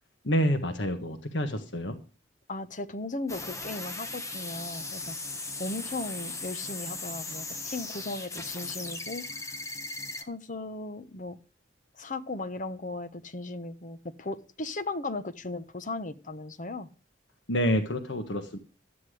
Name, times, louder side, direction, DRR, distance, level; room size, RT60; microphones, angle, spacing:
voice 1, 0.2-2.0 17.5-18.6, equal, 75° left, 7 dB, 1.5 m, -28 dB
voice 2, 2.5-5.2 5.6-9.6 10.2-11.4 11.9-16.9, left 2 dB, 45° left, 11 dB, 1.1 m, -37 dB
sound 1, 3.3-10.2, left 3 dB, 15° left, 1.4 m, -38 dB
13.0 x 9.8 x 5.0 m, 0.34 s
head